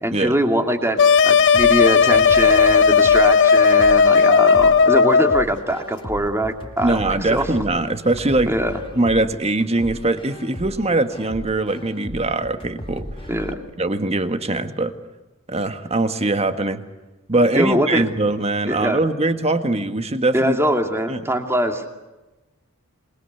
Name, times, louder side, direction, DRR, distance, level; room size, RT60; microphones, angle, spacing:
voice 1, 0.0-7.5 8.4-8.8 13.3-13.7 17.5-18.0 18.7-19.0 20.3-21.8, right 1 dB, 10° right, 5 dB, 2.5 m, -22 dB
sound 1, 1.0-5.5, left 6 dB, 55° left, 1.0 m, -14 dB
sound 2, 1.5-13.5, equal, 25° left, 2.3 m, -36 dB
voice 2, 6.8-8.5 9.0-13.1 13.8-14.9 15.5-16.8 17.3-20.6 21.1-21.2, right 2 dB, 30° right, 9 dB, 1.7 m, -21 dB
27.0 x 22.5 x 8.2 m, 1.1 s
head